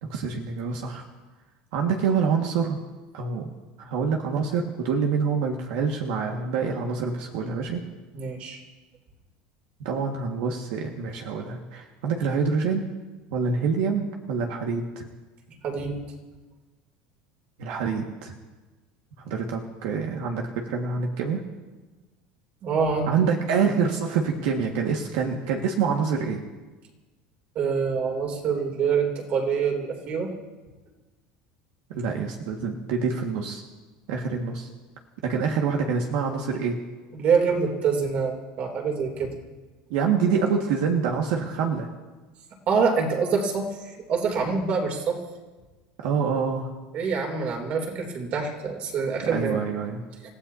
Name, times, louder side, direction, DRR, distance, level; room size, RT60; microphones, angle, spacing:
voice 1, 0.0-1.0 1.7-2.8 3.1-3.5 3.8-7.8 9.8-12.9 13.3-15.1 17.6-18.3 19.2-21.4 23.1-26.4 31.9-33.6 34.1-34.7 35.2-36.8 39.9-41.9 46.0-46.7 49.2-50.0, right 5 dB, 75° right, 1 dB, 1.8 m, -26 dB
voice 2, 8.1-8.6 15.6-16.0 22.6-23.1 27.5-30.3 37.1-39.3 42.7-45.2 46.9-49.6, right 5 dB, 40° right, 2 dB, 3.0 m, -25 dB
30.0 x 15.5 x 2.8 m, 1.2 s
cardioid pair, 155°, 4 cm